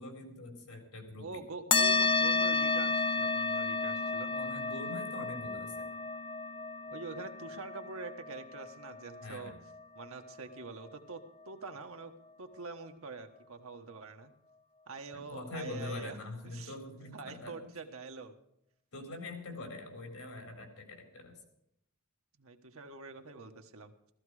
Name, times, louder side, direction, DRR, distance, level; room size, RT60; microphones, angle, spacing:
voice 1, 0.0-1.4 4.3-5.9 9.2-9.6 15.1-17.7 18.9-21.4, left 2 dB, 85° left, 4 dB, 4.2 m, -44 dB
voice 2, 1.2-4.3 6.9-9.5 9.9-11.2 11.5-12.1 12.4-14.3 14.9-16.2 16.4-16.7 17.1-18.3 22.4-23.9, right 3 dB, 70° right, 5 dB, 1.4 m, -45 dB
sound 1, 1.7-10.6, left 4 dB, 25° left, 0.7 m, -32 dB
15.0 x 15.0 x 4.9 m, 0.77 s
head